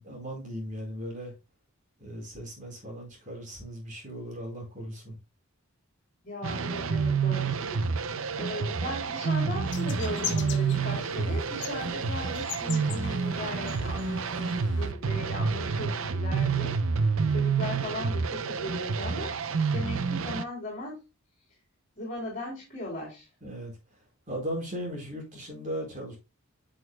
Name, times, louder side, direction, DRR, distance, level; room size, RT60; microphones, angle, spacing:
voice 1, 0.0-1.3 2.0-5.2 23.4-24.0 24.3-26.2, equal, 35° right, 4.5 m, -37 dB
voice 2, 6.2-16.7 17.3-21.0 22.0-23.3, left 1 dB, 40° left, 3.5 m, -38 dB
sound 1, 6.4-20.4, right 5 dB, 65° right, 0.6 m, -29 dB
sound 2, 9.7-14.9, left 8 dB, 55° left, 0.9 m, -41 dB
11.0 x 6.4 x 2.2 m
head